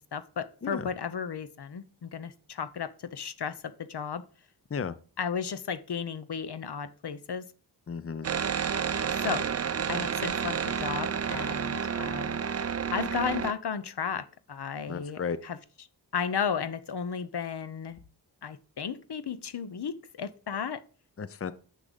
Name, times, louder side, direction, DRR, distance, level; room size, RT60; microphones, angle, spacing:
voice 1, 0.0-4.2 5.2-7.5 9.1-9.5 9.9-12.4 12.9-15.6 16.1-18.0 18.4-20.8, left 6 dB, 70° left, 0.8 m, -34 dB
voice 2, 7.9-8.3 14.9-15.4 21.2-21.5, left 6 dB, 35° left, 0.6 m, -34 dB
sound 1, 8.2-13.5, right 7 dB, 35° right, 0.5 m, -30 dB
6.6 x 6.2 x 5.1 m
wide cardioid pair, 55°, 42 cm